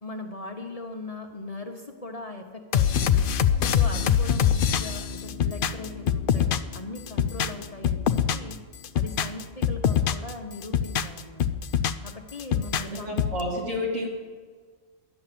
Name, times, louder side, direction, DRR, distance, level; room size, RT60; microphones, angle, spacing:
voice 1, 0.0-3.3 3.8-8.6 8.9-11.5 12.0-13.1, left 2 dB, 30° left, 2 dB, 1.0 m, -39 dB
sound 1, 2.7-6.8 7.1-8.5 8.8-10.3 10.6-12.1 12.4-13.4, left 8 dB, 60° left, 0.5 m, -24 dB
voice 2, 12.7-14.1, left 1 dB, 80° right, -4 dB, 3.4 m, -30 dB
11.5 x 7.2 x 9.8 m, 1.5 s
omnidirectional pair, 1.3 m